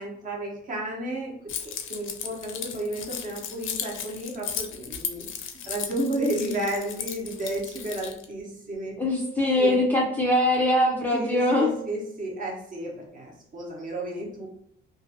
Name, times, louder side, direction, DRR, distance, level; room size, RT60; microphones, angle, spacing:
voice 1, 0.0-1.3 1.6-5.3 5.6-8.9 9.6-9.8 11.1-14.5, right 1 dB, 40° right, -2 dB, 0.9 m, -32 dB
Keys jangling, 1.5-8.2, left 7 dB, 70° left, 0.4 m, -35 dB
voice 2, 9.0-11.7, left 1 dB, 10° left, -3 dB, 0.4 m, -22 dB
2.5 x 2.4 x 2.6 m, 0.73 s
cardioid pair, 150°, 21 cm